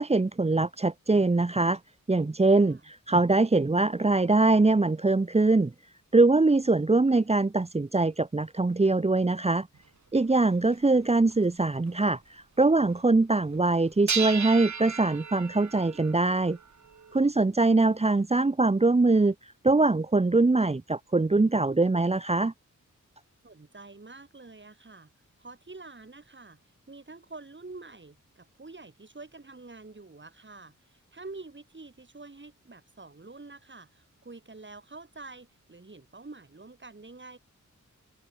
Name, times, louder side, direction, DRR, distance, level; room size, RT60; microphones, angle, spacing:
voice 1, 0.0-1.8 2.1-5.7 6.1-9.7 10.1-16.6 17.1-22.5, right 3 dB, 20° right, 0.8 m, -23 dB
voice 2, 2.6-2.9 17.4-17.6 23.4-25.1 25.4-26.6 26.9-37.4, right 3 dB, 35° right, 5.6 m, -47 dB
sound 1, 9.8-9.9 10.7-10.8 11.3-11.4 11.9-12.1 14.1-17.2, right 6 dB, 65° right, 2.0 m, -35 dB
open air
wide cardioid pair, 95°, 31 cm